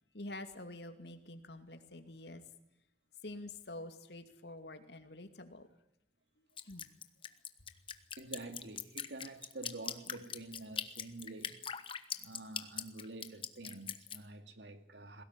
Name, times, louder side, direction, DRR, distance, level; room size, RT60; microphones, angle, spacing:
voice 1, 0.1-2.4 3.2-5.7 6.6-6.9, left 2 dB, 70° left, 2.5 m, -47 dB
Drip, 6.6-14.2, left 8 dB, 30° left, 1.1 m, -41 dB
voice 2, 8.2-11.7 12.2-15.2, right 2 dB, 80° right, 2.4 m, -48 dB
21.5 x 17.5 x 9.7 m
head